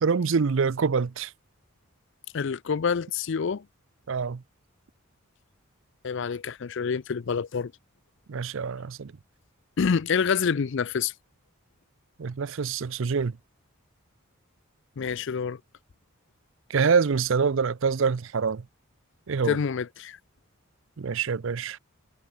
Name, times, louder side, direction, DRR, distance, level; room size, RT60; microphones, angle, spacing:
voice 1, 0.0-1.3 4.1-4.4 8.3-9.1 12.2-13.4 16.7-18.7 19.3-19.6 21.0-21.8, right 5 dB, 60° right, 0.5 m, -25 dB
voice 2, 2.3-3.6 6.0-7.7 9.8-11.1 15.0-15.6 19.5-20.2, left 6 dB, 55° left, 0.4 m, -27 dB
head